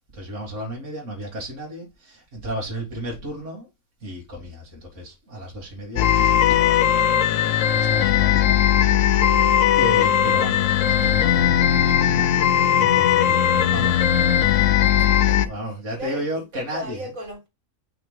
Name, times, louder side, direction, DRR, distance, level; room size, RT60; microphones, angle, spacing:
voice 1, 0.1-3.7 4.0-7.3 7.7-9.0 9.8-12.4 12.8-14.1 15.5-17.1, equal, 65° right, 2.2 m, -33 dB
sound 1, 6.0-15.5, left 10 dB, 75° left, 0.9 m, -18 dB
voice 2, 14.8-15.5 16.0-17.5, right 1 dB, 85° right, 2.7 m, -37 dB
5.6 x 3.2 x 5.4 m
omnidirectional pair, 1.4 m